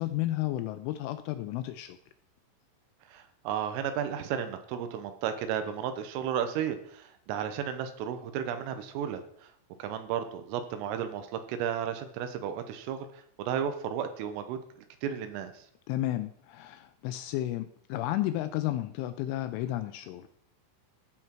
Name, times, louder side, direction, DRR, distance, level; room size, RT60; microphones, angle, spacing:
voice 1, 0.0-2.0 15.9-20.3, left 14 dB, 85° left, 10 dB, 2.8 m, -32 dB
voice 2, 3.1-9.5 9.8-13.1 13.4-14.6 15.0-15.6, right 9 dB, 90° right, 9 dB, 3.4 m, -33 dB
15.0 x 5.9 x 4.5 m, 0.66 s
omnidirectional pair, 6.0 m